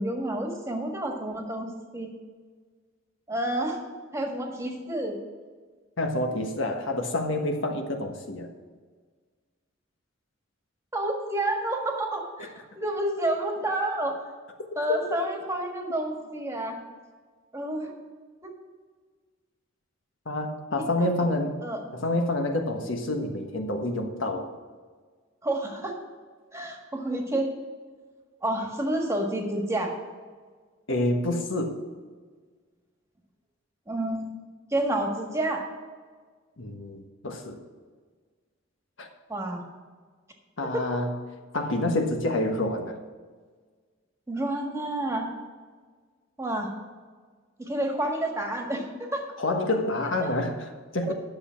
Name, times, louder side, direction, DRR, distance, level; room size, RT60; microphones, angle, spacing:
voice 1, 0.0-2.2 3.3-3.8 4.1-5.2 10.9-14.2 14.7-16.8 17.5-17.9 21.0-21.3 21.6-21.8 25.4-25.9 26.5-27.5 28.4-29.9 33.9-34.3 34.7-35.6 39.3-39.6 40.7-40.8 44.3-45.3 46.4-46.7 47.6-49.3 50.2-50.3 51.1-51.2, right 1 dB, 15° right, 1 dB, 1.6 m, -29 dB
voice 2, 6.0-8.5 20.2-21.5 21.9-24.5 30.9-31.8 36.6-37.6 39.0-39.1 40.6-41.1 41.5-43.0 49.4-51.1, left 1 dB, 75° left, 4 dB, 1.3 m, -28 dB
11.0 x 6.9 x 5.8 m, 1.5 s
head